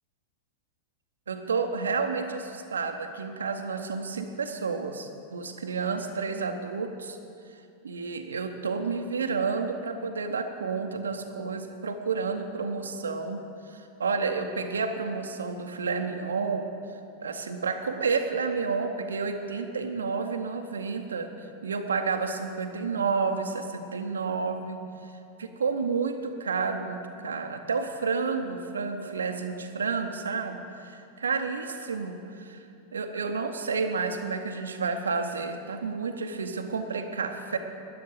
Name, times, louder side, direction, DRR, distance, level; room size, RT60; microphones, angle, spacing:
voice 1, 1.3-7.2 7.8-13.4 13.7-16.7 17.2-25.1 25.4-32.6 32.9-37.6, right 4 dB, 70° right, 5 dB, 0.8 m, -30 dB
13.0 x 9.5 x 7.5 m, 2.6 s
figure-of-eight pair, 90°, 0 cm